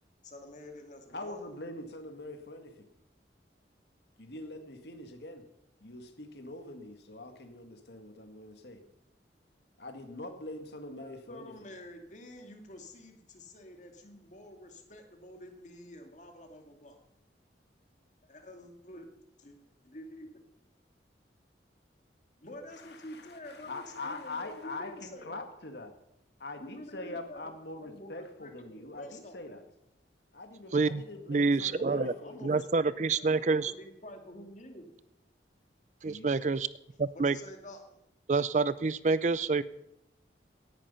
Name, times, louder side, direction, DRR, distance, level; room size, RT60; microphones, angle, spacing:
voice 1, 0.2-1.4 10.9-17.0 18.2-19.1 19.4-19.6 19.8-20.5 22.4-25.4 26.6-29.6 31.7-34.9 37.1-38.0, left 1 dB, 40° left, 4 dB, 2.3 m, -48 dB
voice 2, 1.1-2.7 4.2-5.4 5.8-8.8 9.8-11.5 22.8-25.9 26.4-29.6 30.3-32.5 36.0-36.3, left 2 dB, 65° left, 6 dB, 2.0 m, -43 dB
voice 3, 30.7-31.0 31.3-32.1 32.4-33.7 36.0-36.7 37.0-37.4 38.3-39.6, right 4 dB, 40° right, 17 dB, 0.4 m, -27 dB
17.5 x 10.5 x 5.6 m, 0.83 s
head